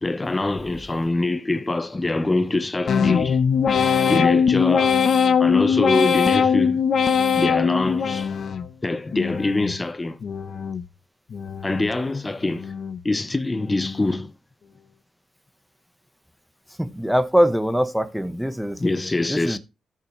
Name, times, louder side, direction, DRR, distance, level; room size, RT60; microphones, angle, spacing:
voice 1, 0.0-3.4 4.1-5.0 5.4-6.8 7.4-8.3 8.8-10.2 11.6-12.7 13.0-14.3 18.8-19.6, left 2 dB, 20° left, 0.7 m, -24 dB
sound 1, 2.9-8.7 9.1-9.8 10.2-10.9 11.3-12.0 12.4-13.0 13.5-14.0, left 6 dB, 60° left, 0.9 m, -21 dB
voice 2, 16.8-18.8 19.3-19.6, equal, ahead, 1.1 m, -22 dB
14.5 x 5.7 x 3.2 m
cardioid pair, 100°, 0 cm